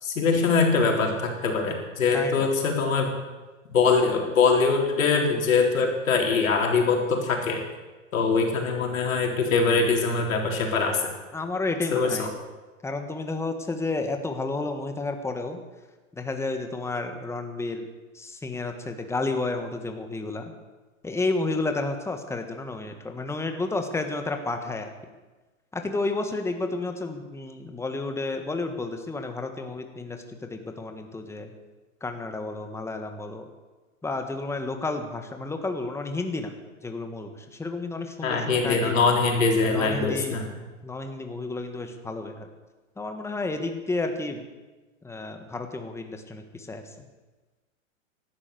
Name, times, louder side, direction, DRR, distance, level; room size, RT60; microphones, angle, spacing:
voice 1, 0.0-3.1 3.7-7.6 8.1-11.0 11.9-12.3 38.2-40.5, left 4 dB, 80° left, 1 dB, 3.9 m, -23 dB
voice 2, 2.1-2.5 11.3-12.3 12.8-15.6 16.2-17.9 18.1-20.5 21.0-24.9 25.7-31.5 32.0-33.4 34.0-36.5 36.8-39.0 39.6-40.4 40.8-42.5 43.0-44.4 45.0-47.0, left 3 dB, 5° left, 5 dB, 1.5 m, -31 dB
16.0 x 12.0 x 6.8 m, 1.2 s
hypercardioid pair, 125°, 40 cm